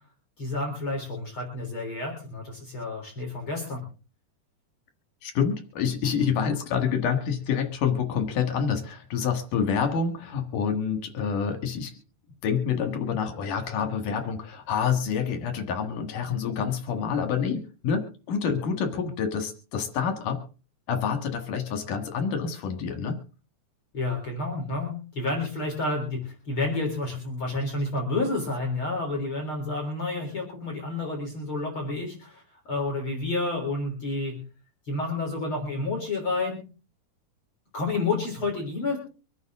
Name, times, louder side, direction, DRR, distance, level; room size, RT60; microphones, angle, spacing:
voice 1, 0.4-3.8 23.9-34.4 34.9-36.6 37.7-39.0, left 2 dB, 40° left, 0 dB, 4.5 m, -30 dB
voice 2, 5.2-11.9 12.4-20.4 20.9-23.2, left 6 dB, 80° left, 6 dB, 3.4 m, -27 dB
25.0 x 9.5 x 3.7 m, 0.36 s
omnidirectional pair, 3.6 m